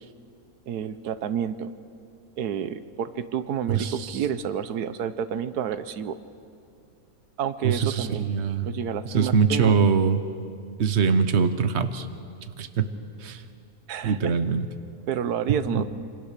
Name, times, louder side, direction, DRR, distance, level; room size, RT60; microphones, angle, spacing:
voice 1, 0.7-1.7 2.4-6.2 7.4-8.3 8.6-9.7 13.9-14.3 15.1-15.8, right 8 dB, 85° right, 12 dB, 1.4 m, -29 dB
voice 2, 3.7-4.2 7.6-8.7 9.0-10.2 10.8-12.1 12.6-12.9 13.2-13.4 14.0-14.6 15.5-15.8, right 6 dB, 50° right, 10 dB, 1.3 m, -23 dB
26.5 x 25.5 x 6.8 m, 2.5 s
omnidirectional pair, 1.6 m